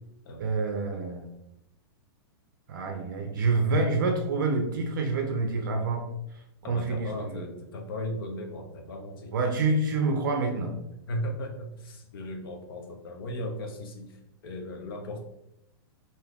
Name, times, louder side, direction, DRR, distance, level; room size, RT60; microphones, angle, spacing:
voice 1, 0.4-1.3 2.7-6.1 6.7-7.5 9.3-10.8, right 3 dB, 55° right, 4 dB, 0.5 m, -27 dB
voice 2, 6.6-9.4 11.1-15.2, left 1 dB, 60° left, 3 dB, 0.6 m, -36 dB
2.6 x 2.4 x 3.3 m, 0.82 s
supercardioid pair, 180°, 13 cm